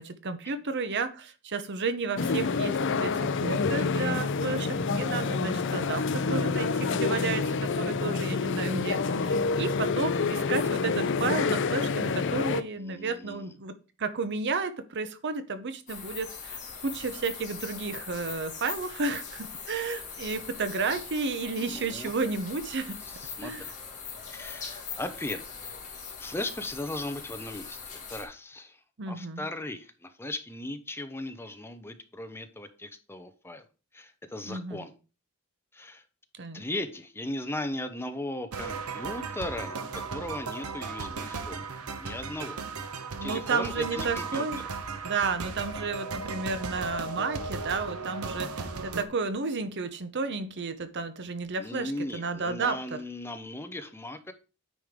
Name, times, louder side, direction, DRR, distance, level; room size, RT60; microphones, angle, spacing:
voice 1, 0.0-23.0 23.4-23.6 29.0-29.4 34.5-34.8 36.4-36.6 43.2-44.6 45.0-52.8, right 4 dB, 50° right, 0.7 m, -32 dB
sound 1, 2.2-12.6, left 4 dB, 55° left, 0.6 m, -28 dB
voice 2, 12.8-13.5 21.6-22.1 23.1-23.7 24.3-25.7 26.2-28.8 29.1-33.6 33.9-34.9 35.7-36.0 36.5-41.6 42.0-42.6 43.2-44.7 51.6-54.3, left 1 dB, 10° left, 0.7 m, -37 dB
sound 2, 15.9-28.2, left 6 dB, 35° left, 2.4 m, -41 dB
sound 3, 38.5-49.1, right 4 dB, 85° right, 1.0 m, -36 dB
9.3 x 5.1 x 3.6 m
head